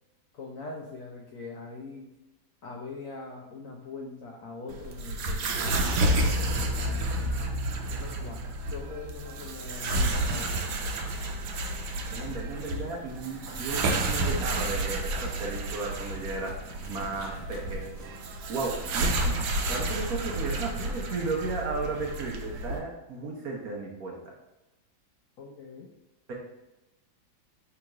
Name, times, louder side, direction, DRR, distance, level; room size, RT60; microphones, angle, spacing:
voice 1, 0.3-2.1 2.6-7.5 7.9-11.0 25.4-25.9, left 3 dB, 90° left, 0 dB, 0.7 m, -42 dB
sound 1, 4.7-22.8, right 2 dB, 85° right, 1.4 m, -31 dB
sound 2, 5.6-10.5, left 1 dB, 50° left, 1.2 m, -33 dB
sound 3, 12.1-18.6, right 2 dB, 25° right, 0.5 m, -52 dB
voice 2, 12.1-17.9 18.5-19.4 19.6-24.2 26.3-26.4, right 3 dB, 60° right, -1 dB, 1.0 m, -34 dB
3.5 x 2.9 x 4.7 m, 0.98 s
omnidirectional pair, 2.1 m